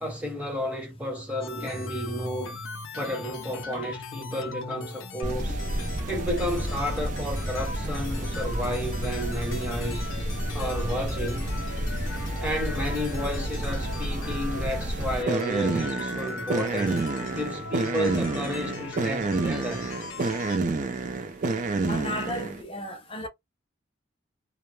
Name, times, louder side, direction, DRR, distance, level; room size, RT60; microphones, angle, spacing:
voice 1, 0.0-2.5 2.9-5.6 6.1-10.1 10.5-11.5 12.4-19.9, equal, 5° right, 0.8 m, -32 dB
sound 1, 1.4-20.6, left 3 dB, 85° left, 0.5 m, -39 dB
sound 2, 5.2-22.6, right 2 dB, 40° right, 0.4 m, -30 dB
voice 2, 21.9-23.3, left 1 dB, 30° left, 0.6 m, -34 dB
2.2 x 2.0 x 3.0 m
head